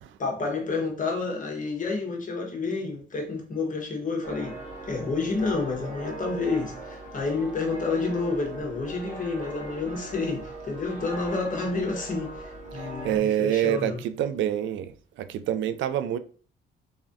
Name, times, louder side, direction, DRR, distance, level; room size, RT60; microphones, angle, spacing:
voice 1, 0.2-4.6 4.9-14.0, left 3 dB, 40° left, 1.2 m, -29 dB
sound 1, 4.2-13.2, right 2 dB, 35° right, 1.2 m, -39 dB
voice 2, 12.7-14.9 15.2-16.2, right 11 dB, 75° right, 0.4 m, -27 dB
3.5 x 3.2 x 2.6 m
cardioid pair, 90°, 20 cm